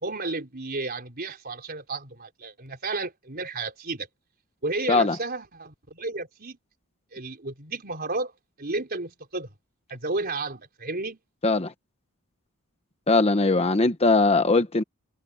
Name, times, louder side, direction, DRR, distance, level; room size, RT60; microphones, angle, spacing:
voice 1, 0.0-4.1 4.6-6.6 7.1-8.3 8.6-9.5 9.9-11.2, right 3 dB, 45° right, 4.4 m, -32 dB
voice 2, 13.1-14.8, left 3 dB, 30° left, 1.0 m, -20 dB
head